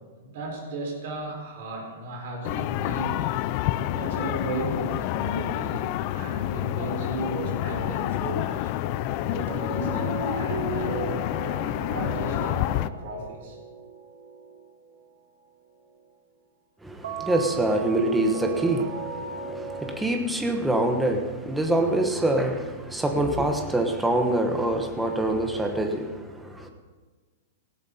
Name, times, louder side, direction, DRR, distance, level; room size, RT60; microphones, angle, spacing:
voice 1, 0.2-3.3 3.9-11.0 11.6-13.6, right 2 dB, 45° right, 0 dB, 5.5 m, -35 dB
Distant Japanese bar, 2.4-12.9, left 14 dB, 30° left, 0.4 m, -28 dB
sound 1, 6.0-7.4 9.5-15.1 17.0-20.0, right 4 dB, 85° right, 3.1 m, -36 dB
voice 2, 16.8-26.7, right 1 dB, 5° right, 4 dB, 1.1 m, -25 dB
18.5 x 16.5 x 4.2 m, 1.4 s
supercardioid pair, 175°, 0 cm